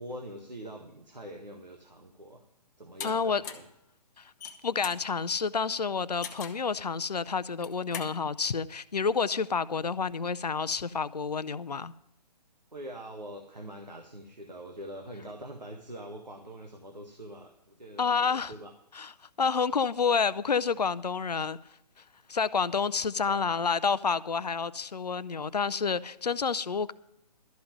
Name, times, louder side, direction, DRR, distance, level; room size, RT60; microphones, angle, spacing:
voice 1, 0.0-2.4 2.8-3.6 12.7-18.7 23.3-23.4, right 1 dB, 85° right, 1.5 m, -44 dB
voice 2, 3.0-3.4 4.2-4.3 4.6-11.9 18.0-18.5 18.9-26.9, left 5 dB, 70° left, 0.6 m, -29 dB
sound 1, 3.0-3.1 3.4-3.7 4.2-5.0 6.2-6.6 7.5-8.1, left 7 dB, 25° left, 0.9 m, -40 dB
12.5 x 5.7 x 9.3 m
figure-of-eight pair, 130°, 21 cm